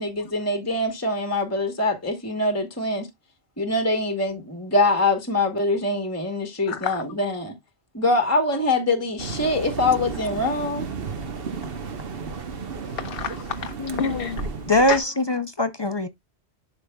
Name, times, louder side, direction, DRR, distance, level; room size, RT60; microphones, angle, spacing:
voice 1, 0.0-3.1 3.6-7.5 7.9-10.9, left 2 dB, 15° left, 1.0 m, -24 dB
voice 2, 6.7-7.0 12.8-14.5 14.9-15.1, left 6 dB, 65° left, 0.8 m, -30 dB
sound 1, 9.2-15.0, right 5 dB, 60° right, 1.1 m, -33 dB
voice 3, 14.7-16.1, left 1 dB, 35° left, 0.4 m, -21 dB
11.5 x 4.9 x 2.2 m
omnidirectional pair, 1.1 m